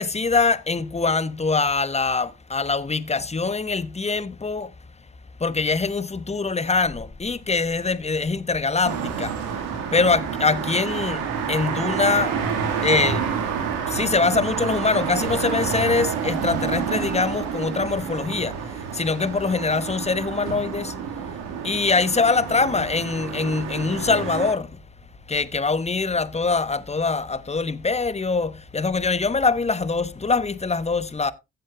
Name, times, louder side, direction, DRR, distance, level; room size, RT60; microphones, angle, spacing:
voice 1, 0.0-4.7 5.4-9.5 9.9-12.4 12.8-13.2 13.9-21.0 21.6-24.8 25.3-31.3, left 4 dB, 20° left, 0.9 m, -23 dB
sound 1, 8.8-24.5, right 7 dB, 80° right, 1.8 m, -29 dB
15.5 x 7.8 x 2.2 m
hypercardioid pair, 40°, 31 cm